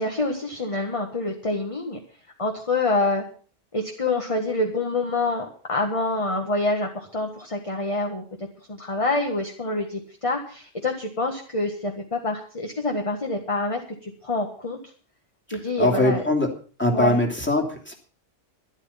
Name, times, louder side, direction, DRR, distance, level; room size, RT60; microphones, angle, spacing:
voice 1, 0.0-2.0 2.4-3.2 3.7-8.2 8.7-14.8 15.5-16.2 16.9-17.2, left 2 dB, 25° left, 3 dB, 1.6 m, -26 dB
voice 2, 15.8-16.5 16.8-17.9, left 1 dB, 10° left, 2 dB, 2.8 m, -21 dB
13.0 x 12.0 x 5.7 m, 0.41 s
omnidirectional pair, 1.3 m